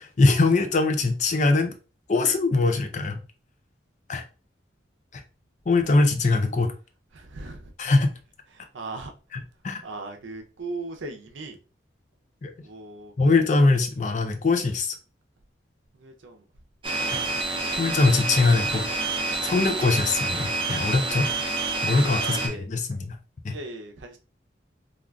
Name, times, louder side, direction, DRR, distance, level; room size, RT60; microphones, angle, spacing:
voice 1, 0.0-1.7 2.1-3.2 4.1-4.2 5.1-5.2 5.7-6.7 7.8-8.1 9.3-9.8 12.4-12.5 13.2-15.0 17.1-17.2 17.8-18.9 19.4-21.3 21.8-23.2 23.4-23.6, left 3 dB, 40° left, 0.4 m, -22 dB
voice 2, 7.1-7.7 8.7-9.1 9.8-11.6 12.6-13.1 16.0-16.4 22.2-22.7 23.5-24.2, right 2 dB, 80° right, 0.6 m, -38 dB
sound 1, 16.8-22.5, right 2 dB, 25° right, 0.5 m, -28 dB
3.6 x 2.4 x 2.3 m
head